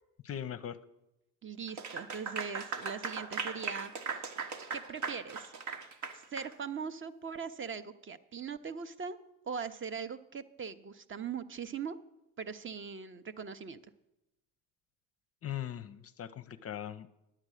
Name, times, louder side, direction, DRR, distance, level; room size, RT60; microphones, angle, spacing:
voice 1, 0.3-0.8 15.4-17.1, left 10 dB, 35° left, 12 dB, 0.6 m, -40 dB
voice 2, 1.4-4.2 4.7-5.5 6.1-9.2 9.4-12.0 12.4-13.8, right 6 dB, 30° right, 12 dB, 0.6 m, -40 dB
Clapping / Applause, 1.7-6.5, right 5 dB, 70° right, 1.2 m, -38 dB
10.5 x 7.6 x 6.3 m, 0.91 s
hypercardioid pair, 65°, 41 cm